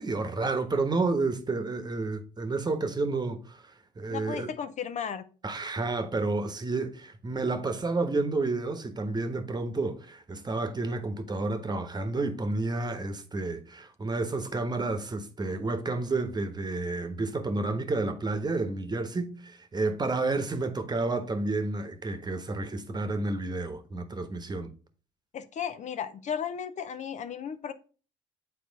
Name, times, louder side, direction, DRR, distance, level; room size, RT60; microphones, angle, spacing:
voice 1, 0.0-3.6 4.0-4.5 5.4-24.7, right 3 dB, 25° right, 1.1 m, -30 dB
voice 2, 4.1-5.2 25.3-27.7, left 8 dB, 50° left, 0.6 m, -35 dB
7.3 x 4.2 x 4.0 m
hypercardioid pair, 60°, 15 cm